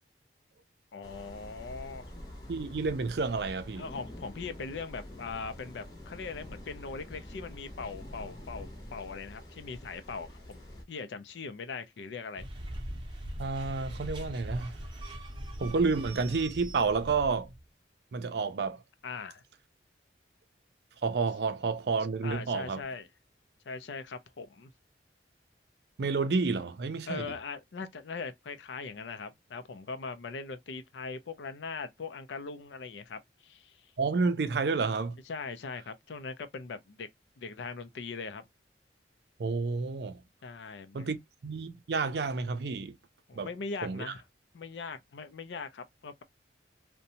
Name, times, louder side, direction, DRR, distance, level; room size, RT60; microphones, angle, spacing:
voice 1, 0.9-2.1 3.7-10.6 10.9-12.5 19.0-19.4 22.2-23.1 23.6-24.7 27.1-33.9 35.3-37.1 37.4-38.5 40.4-41.1 43.3-44.2 44.5-46.2, left 4 dB, 75° left, 0.4 m, -40 dB
sound 1, 1.0-10.8, left 1 dB, 25° left, 0.7 m, -46 dB
voice 2, 2.5-3.9 13.4-14.7 15.6-17.5 18.1-18.8 21.0-22.8 26.0-27.3 34.0-35.2 39.4-40.2 40.9-42.9 43.4-43.5 43.8-44.0, right 4 dB, 65° right, 0.4 m, -30 dB
sound 2, 12.4-17.7, equal, 25° right, 0.6 m, -41 dB
2.6 x 2.1 x 2.7 m
head